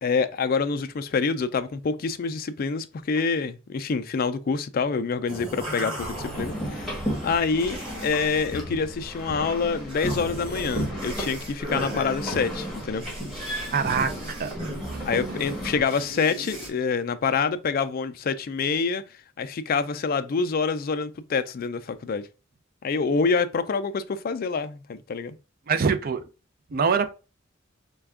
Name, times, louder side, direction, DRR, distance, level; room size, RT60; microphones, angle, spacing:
voice 1, 0.0-13.0 15.0-22.3 22.8-25.4, left 5 dB, 45° left, 0.3 m, -26 dB
sound 1, 5.3-8.6 9.0-9.3 9.8-16.7, equal, 25° right, 1.6 m, -37 dB
sound 2, 6.0-15.8, equal, ahead, 1.1 m, -34 dB
voice 2, 13.7-14.6 14.9-15.0 25.7-26.2 26.7-27.1, right 5 dB, 45° right, 0.4 m, -24 dB
3.3 x 2.3 x 3.5 m
head